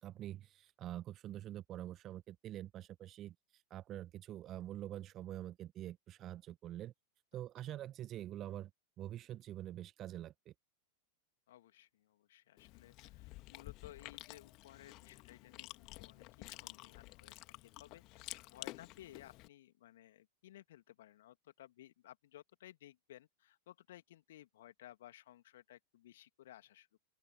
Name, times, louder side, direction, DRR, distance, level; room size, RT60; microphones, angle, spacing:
voice 1, 0.0-3.3 3.7-6.9 7.3-8.7 9.0-10.5, right 12 dB, 30° right, 1.2 m, -46 dB
voice 2, 11.5-27.0, left 13 dB, 55° left, 2.5 m, -58 dB
Chewing mastication, 12.6-19.5, left 21 dB, 40° left, 2.5 m, -51 dB
open air
figure-of-eight pair, 90°, 0 cm